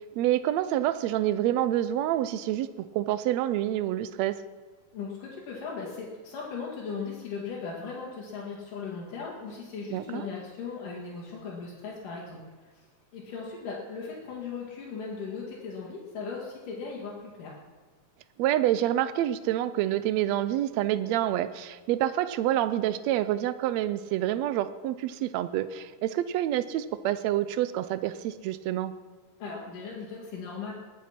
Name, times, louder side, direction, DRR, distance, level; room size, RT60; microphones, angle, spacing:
voice 1, 0.1-4.4 9.9-10.3 18.4-28.9, right 13 dB, 80° right, 14 dB, 1.6 m, -27 dB
voice 2, 4.9-12.4 12.7-12.8 13.1-17.5 29.4-30.7, left 5 dB, 80° left, -6 dB, 3.9 m, -38 dB
20.0 x 9.7 x 5.9 m, 1.4 s
omnidirectional pair, 3.7 m